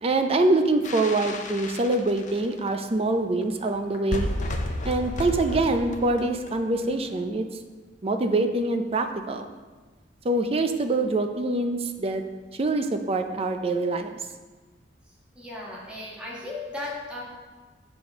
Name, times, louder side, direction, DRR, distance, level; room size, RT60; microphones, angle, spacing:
voice 1, 0.0-4.3 4.8-7.4 8.0-9.5 10.2-12.2 12.5-14.1, right 2 dB, 35° right, 6 dB, 0.5 m, -25 dB
sound 1, 0.8-2.7 3.4-3.5 3.7-3.8 3.9-7.1, left 1 dB, 45° left, 0.6 m, -32 dB
voice 2, 15.3-17.2, left 2 dB, 5° right, -6 dB, 1.5 m, -36 dB
6.8 x 4.2 x 5.7 m, 1.3 s
head